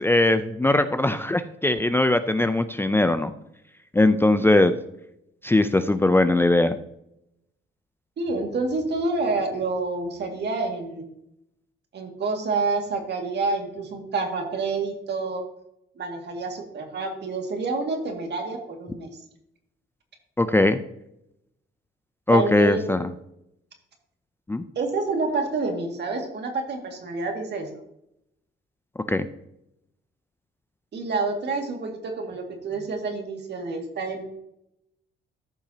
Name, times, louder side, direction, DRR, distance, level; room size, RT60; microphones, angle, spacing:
voice 1, 0.0-3.3 3.9-4.8 5.4-6.8 20.4-20.8 22.3-23.0 24.5-24.6 29.1-29.3, left 2 dB, 10° left, 10 dB, 0.5 m, -20 dB
voice 2, 8.2-11.1 11.9-15.5 16.0-19.1 22.3-22.8 24.8-27.7 30.9-34.2, right 3 dB, 60° right, 3 dB, 2.2 m, -28 dB
14.0 x 5.8 x 2.8 m, 0.80 s
cardioid pair, 90°, 20 cm